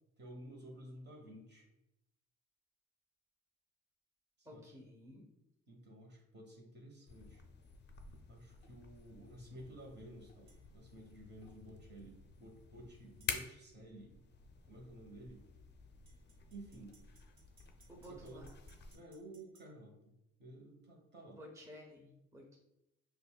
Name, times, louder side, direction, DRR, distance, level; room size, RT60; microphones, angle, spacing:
voice 1, 0.2-1.7 4.4-4.6 5.7-7.4 8.3-14.2 14.6-15.4 16.5-17.0 18.1-18.5 18.9-20.1 20.4-21.4, right 1 dB, 35° right, -1 dB, 1.1 m, -53 dB
voice 2, 4.4-5.2 17.9-18.5 21.3-22.5, equal, 10° right, -3 dB, 0.9 m, -53 dB
sound 1, 7.1-19.0, left 5 dB, 35° left, 0.4 m, -50 dB
sound 2, 10.5-10.6 13.2-13.4 16.1-19.7, right 3 dB, 60° right, 1.4 m, -68 dB
5.4 x 2.3 x 2.3 m, 0.86 s
cardioid pair, 90°, 30 cm